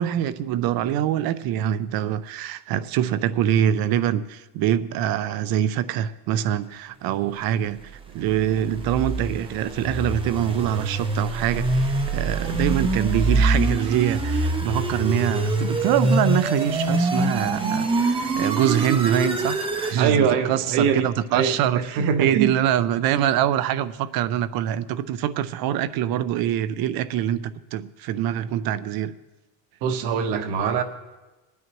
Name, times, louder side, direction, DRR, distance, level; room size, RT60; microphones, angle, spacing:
voice 1, 0.0-29.1, right 10 dB, 60° right, 14 dB, 0.6 m, -24 dB
sound 1, 7.8-20.0, right 2 dB, 15° right, 0.6 m, -25 dB
voice 2, 20.0-21.5 22.0-22.5 29.8-30.8, right 7 dB, 75° right, 7 dB, 1.2 m, -22 dB
24.0 x 9.5 x 3.0 m, 1.1 s
cardioid pair, 160°, 42 cm